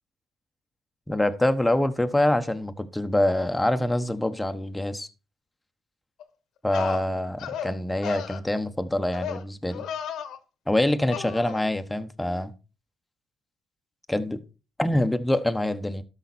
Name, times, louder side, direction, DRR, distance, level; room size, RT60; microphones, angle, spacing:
voice 1, 1.1-5.1 6.6-9.8 10.7-12.5 14.1-14.4 14.8-16.0, left 1 dB, 10° left, 9 dB, 1.1 m, -25 dB
sound 1, 6.2-6.3 6.7-7.0 7.4-7.7 8.0-8.4 9.1-9.4 9.7-10.4 11.1-11.6, left 8 dB, 80° left, 1.2 m, -34 dB
12.5 x 5.8 x 4.2 m, 0.31 s
cardioid pair, 90°, 0 cm